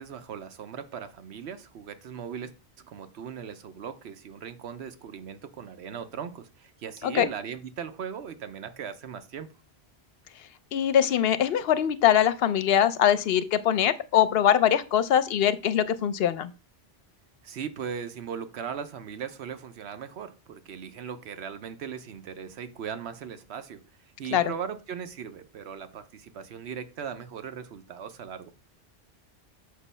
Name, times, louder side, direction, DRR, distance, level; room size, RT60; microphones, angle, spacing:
voice 1, 0.0-2.5 2.8-9.5 17.4-28.5, right 7 dB, 85° right, 1.0 m, -38 dB
voice 2, 10.7-16.5 24.3-24.5, left 9 dB, 70° left, 0.8 m, -22 dB
6.5 x 3.0 x 5.5 m
omnidirectional pair, 1.1 m